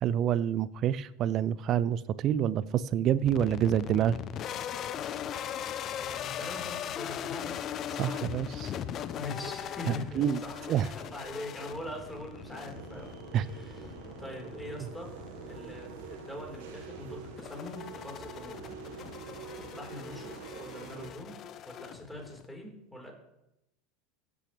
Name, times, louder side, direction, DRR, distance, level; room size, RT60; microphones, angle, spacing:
voice 1, 0.0-4.2 8.0-8.7 9.9-10.4 10.7-10.9 13.3-13.4, right 10 dB, 45° right, 19 dB, 0.5 m, -27 dB
sound 1, 3.3-22.5, left 9 dB, 40° left, 0.7 m, -40 dB
sound 2, 3.8-21.1, right 5 dB, 65° right, 1.6 m, -48 dB
voice 2, 5.8-7.7 9.1-10.7 10.9-15.1 15.5-18.6 19.6-20.3 20.6-23.1, left 1 dB, 5° left, 0 dB, 4.5 m, -43 dB
15.5 x 8.6 x 3.4 m, 0.87 s
hypercardioid pair, 80°, 0 cm